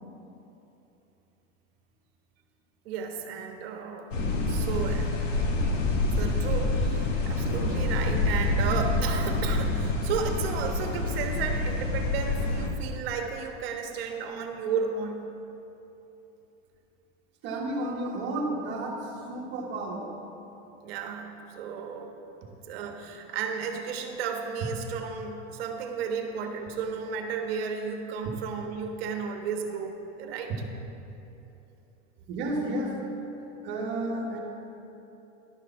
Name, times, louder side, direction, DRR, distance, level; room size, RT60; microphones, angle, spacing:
voice 1, 2.8-4.1 4.5-5.2 6.2-15.3 20.8-22.1 22.7-30.5, right 6 dB, 55° right, 4 dB, 1.3 m, -33 dB
sound 1, 4.1-12.7, left 2 dB, 90° left, 1.6 m, -27 dB
voice 2, 17.4-20.1 32.3-33.4 33.6-34.4, right 1 dB, 30° right, -1 dB, 1.5 m, -32 dB
11.5 x 6.6 x 5.7 m, 3.0 s
supercardioid pair, 160°, 37 cm